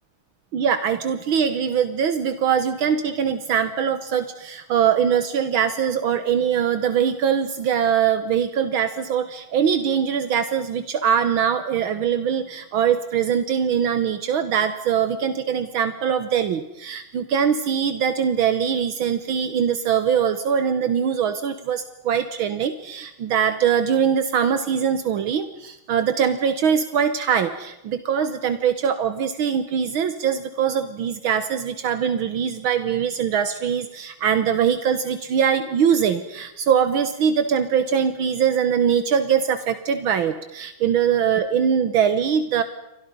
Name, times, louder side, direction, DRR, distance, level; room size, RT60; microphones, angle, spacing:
voice 1, 0.5-42.6, right 8 dB, 75° right, 10 dB, 1.9 m, -22 dB
29.5 x 24.0 x 5.4 m, 0.86 s
omnidirectional pair, 2.3 m